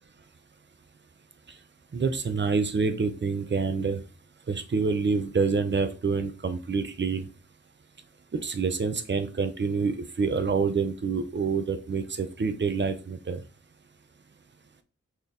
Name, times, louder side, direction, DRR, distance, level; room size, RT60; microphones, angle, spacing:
voice 1, 1.9-4.0 4.5-7.3 8.4-13.4, right 5 dB, 40° right, 10 dB, 0.5 m, -27 dB
3.9 x 3.1 x 2.6 m, 0.34 s
wide cardioid pair, 60°, 30 cm